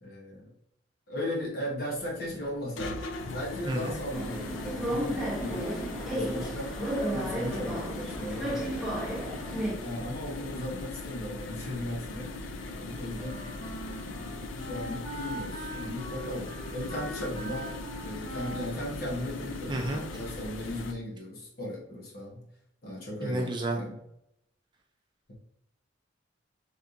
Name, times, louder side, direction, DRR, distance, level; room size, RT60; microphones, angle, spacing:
voice 1, 0.0-0.5 1.1-5.7 6.1-6.7 7.1-8.9 9.8-12.3 12.7-13.4 14.0-17.8 18.0-22.4 22.8-24.0 25.3-25.4, left 1 dB, 50° left, -3 dB, 1.2 m, -37 dB
sound 1, 1.9-20.9, left 2 dB, 80° left, 0.4 m, -39 dB
sound 2, 4.1-9.7, right 1 dB, ahead, 0.9 m, -33 dB
Wind instrument woodwind instrument, 13.1-20.2, right 1 dB, 25° left, 1.1 m, -43 dB
voice 2, 19.7-20.0 23.2-23.8, right 2 dB, 25° right, 2 dB, 0.4 m, -30 dB
4.2 x 3.4 x 2.5 m, 0.79 s
head